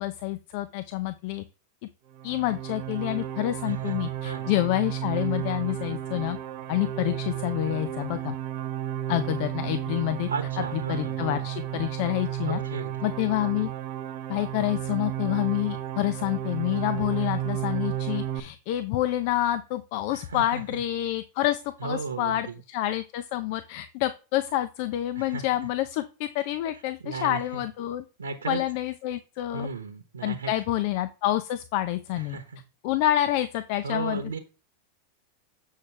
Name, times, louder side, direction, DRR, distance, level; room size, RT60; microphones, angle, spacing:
voice 1, 0.0-1.4 2.2-6.4 6.7-8.4 9.1-10.3 10.6-12.6 13.0-13.7 14.3-28.0 28.4-29.7 30.2-32.4 32.8-34.2, left 14 dB, 55° left, 11 dB, 0.7 m, -28 dB
sound 1, 2.1-18.4, right 12 dB, 55° right, 1.1 m, -33 dB
voice 2, 3.6-4.0 4.2-4.5 10.3-11.4 12.5-12.9 20.1-20.8 21.8-22.5 25.2-25.4 27.0-27.6 28.2-28.6 29.5-30.8 32.3-32.6 33.8-34.4, right 4 dB, 90° right, 7 dB, 1.1 m, -35 dB
8.4 x 6.5 x 3.4 m, 0.32 s
hypercardioid pair, 100°, 0 cm